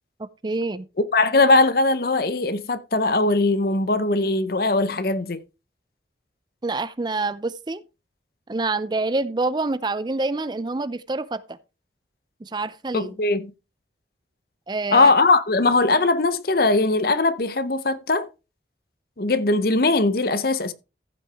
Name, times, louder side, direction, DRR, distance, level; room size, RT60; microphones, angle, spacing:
voice 1, 0.2-0.9 6.6-7.8 8.5-11.6 12.4-13.1 14.7-15.1, right 3 dB, 25° right, 0.4 m, -27 dB
voice 2, 1.1-5.4 12.9-13.5 14.9-18.3 19.2-20.7, left 3 dB, 55° left, 0.8 m, -20 dB
15.0 x 6.0 x 3.4 m
head